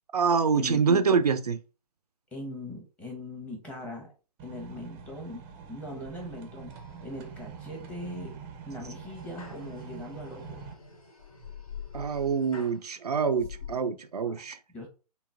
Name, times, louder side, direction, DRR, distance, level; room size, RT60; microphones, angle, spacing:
voice 1, 0.1-1.6 11.9-14.6, right 5 dB, 75° right, 0.4 m, -25 dB
voice 2, 2.3-4.1 4.4-5.4 5.7-6.7 7.0-8.4 8.7-10.6 14.2-14.5 14.7-14.9, left 1 dB, 5° left, 0.8 m, -40 dB
sound 1, 4.4-10.7, right 6 dB, 20° right, 0.5 m, -45 dB
sound 2, 6.7-7.4 7.8-8.3 8.8-12.8 13.3-13.7, left 7 dB, 60° left, 1.2 m, -46 dB
3.9 x 2.0 x 3.5 m
figure-of-eight pair, 125°, 20 cm